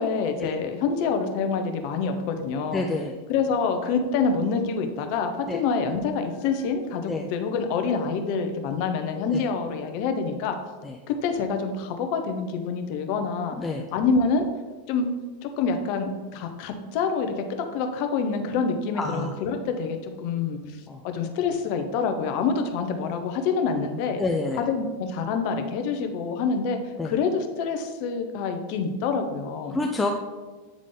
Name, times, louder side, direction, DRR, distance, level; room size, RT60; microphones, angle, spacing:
voice 1, 0.0-2.8 3.3-10.6 11.1-13.6 13.9-14.4 14.9-15.1 15.4-17.3 17.7-20.8 21.0-24.2 24.6-26.8 27.0-29.8, left 5 dB, 55° left, 6 dB, 0.8 m, -26 dB
voice 2, 2.7-3.1 5.5-5.6 7.1-7.3 9.3-9.4 10.8-10.9 13.6-13.8 19.0-19.3 20.9-21.0 24.2-24.6 27.0-27.1 29.7-30.1, left 3 dB, 15° left, 1 dB, 0.5 m, -28 dB
8.2 x 3.6 x 3.8 m, 1.3 s
hypercardioid pair, 90°, 0 cm